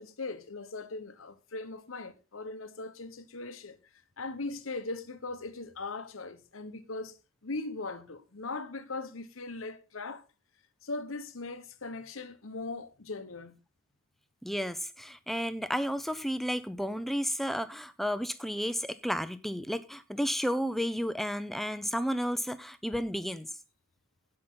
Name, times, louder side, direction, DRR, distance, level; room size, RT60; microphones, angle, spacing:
voice 1, 0.0-3.8 4.2-7.2 7.4-10.2 10.8-13.6, left 3 dB, 90° left, 1.1 m, -39 dB
voice 2, 14.4-23.5, equal, ahead, 0.5 m, -32 dB
16.5 x 5.7 x 3.7 m
head